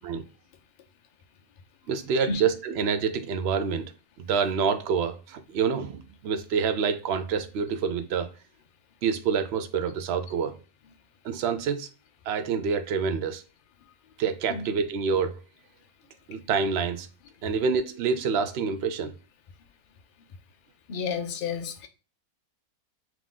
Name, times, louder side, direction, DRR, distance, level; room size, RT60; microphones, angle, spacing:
voice 1, 1.9-3.9 4.3-8.3 9.0-10.5 11.2-11.9 12.3-13.4 14.2-15.4 16.3-17.1 17.4-19.1, right 6 dB, 65° right, 0.6 m, -27 dB
voice 2, 20.9-21.9, left 5 dB, 55° left, 0.5 m, -31 dB
3.8 x 3.0 x 3.5 m
omnidirectional pair, 1.6 m